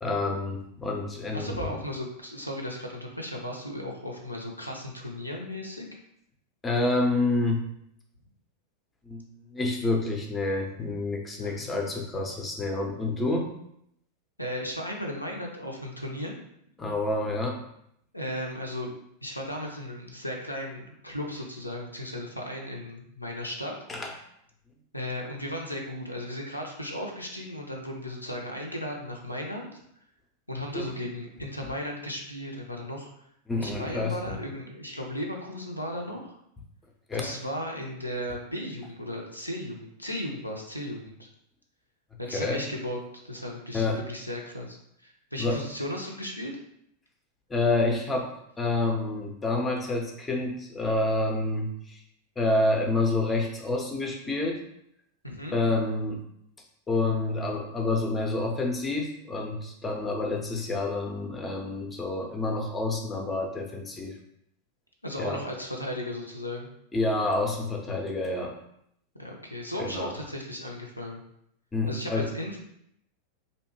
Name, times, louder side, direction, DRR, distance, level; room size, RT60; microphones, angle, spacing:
voice 1, 0.0-1.7 6.6-7.6 9.1-13.5 16.8-17.6 23.9-24.1 30.7-30.8 33.5-34.2 37.1-37.3 42.3-42.6 43.7-44.0 45.4-45.6 47.5-48.3 48.6-52.0 52.4-54.6 55.5-56.2 56.9-64.1 65.2-65.4 66.9-68.5 69.8-70.1 71.7-72.3, left 2 dB, 15° left, 2 dB, 0.5 m, -28 dB
voice 2, 1.3-5.9 11.4-12.2 14.4-16.3 18.1-18.9 19.2-23.7 24.9-29.8 30.5-33.1 33.6-36.4 37.1-41.3 42.2-43.0 43.2-46.5 55.2-55.6 65.0-66.7 69.1-71.2 71.9-72.6, left 1 dB, 90° left, 0 dB, 0.4 m, -36 dB
2.7 x 2.1 x 2.8 m, 0.73 s
figure-of-eight pair, 90°, 0 cm